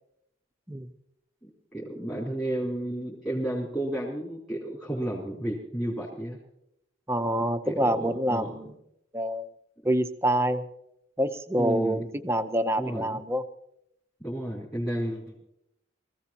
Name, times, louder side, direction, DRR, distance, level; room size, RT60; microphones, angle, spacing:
voice 1, 1.4-6.4 7.7-8.6 11.6-12.0 12.8-13.2 14.2-15.3, right 1 dB, 15° left, -7 dB, 3.4 m, -32 dB
voice 2, 7.1-8.7 9.1-9.5 9.8-10.6 11.2-13.4, right 1 dB, 15° right, 8 dB, 0.7 m, -26 dB
24.0 x 15.5 x 2.9 m, 0.79 s
head